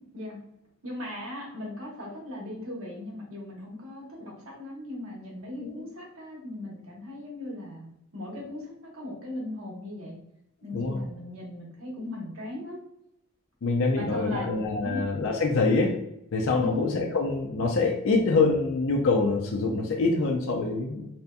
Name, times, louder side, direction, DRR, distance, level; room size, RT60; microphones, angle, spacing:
voice 1, 0.8-10.2 10.6-12.8 14.0-15.0 16.6-16.9, left 1 dB, 80° right, -2 dB, 0.9 m, -38 dB
voice 2, 10.7-11.0 13.6-15.9 16.3-21.1, left 3 dB, 70° left, 0 dB, 0.4 m, -25 dB
2.7 x 2.5 x 2.2 m, 0.80 s
head